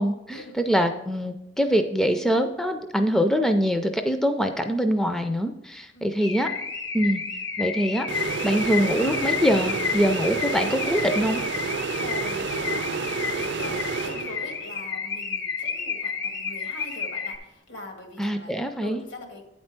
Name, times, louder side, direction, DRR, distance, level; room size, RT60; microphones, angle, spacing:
voice 1, 0.0-6.5 6.9-7.2 7.6-11.4 18.2-19.0, equal, 5° left, 6 dB, 0.4 m, -24 dB
Car / Alarm, 6.2-17.4, left 6 dB, 60° left, 0.8 m, -31 dB
sound 1, 8.1-14.7, right 5 dB, 60° right, 0.5 m, -30 dB
voice 2, 12.0-18.5 18.8-19.4, left 1 dB, 80° left, 2 dB, 1.8 m, -41 dB
8.7 x 4.3 x 5.9 m, 0.88 s
head